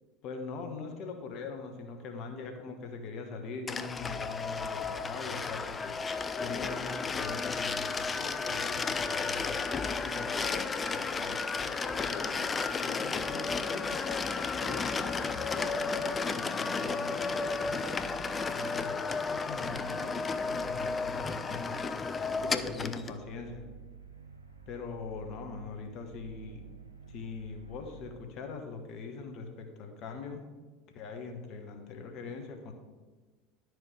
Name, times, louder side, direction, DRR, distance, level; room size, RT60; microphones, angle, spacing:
voice 1, 0.2-9.6 9.9-14.0 14.6-17.9 18.5-19.0 19.3-21.8 22.1-23.6 24.7-26.7 27.1-30.4 30.9-32.7, left 4 dB, 50° left, 4 dB, 1.3 m, -42 dB
sound 1, 3.7-23.2, left 4 dB, 25° left, 0.4 m, -33 dB
sound 2, 17.9-28.1, right 6 dB, 85° right, 0.7 m, -52 dB
11.0 x 4.8 x 5.0 m, 1.3 s
figure-of-eight pair, 70°, 0 cm